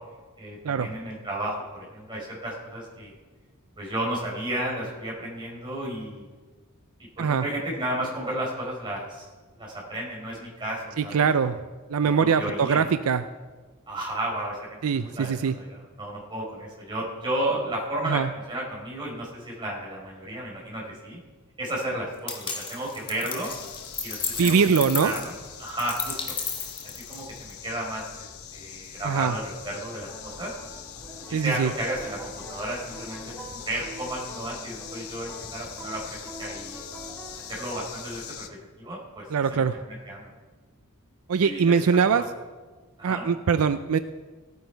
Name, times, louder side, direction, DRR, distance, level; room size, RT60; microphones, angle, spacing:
voice 1, 0.4-3.1 3.8-6.2 7.2-9.3 9.6-11.3 12.0-12.8 13.9-18.2 18.5-21.2 21.6-23.5 24.0-25.3 25.6-26.2 27.1-28.3 28.5-30.5 31.3-33.2 33.5-36.8 37.5-39.2 39.5-40.3 41.4-41.8 42.1-42.2 43.0-43.3, right 1 dB, 20° right, -4 dB, 4.2 m, -33 dB
voice 2, 11.0-11.6 11.9-13.2 14.8-15.5 18.1-18.3 24.4-25.1 29.0-29.3 31.3-31.7 39.3-39.7 41.3-42.2 43.0-44.0, right 6 dB, 75° right, 11 dB, 0.5 m, -22 dB
sound 1, 22.3-27.5, left 5 dB, 25° left, 1.3 m, -34 dB
sound 2, 23.4-38.5, left 8 dB, 75° left, 0.8 m, -43 dB
sound 3, 30.1-37.8, equal, 5° left, 3.0 m, -44 dB
16.5 x 9.4 x 4.6 m, 1.4 s
head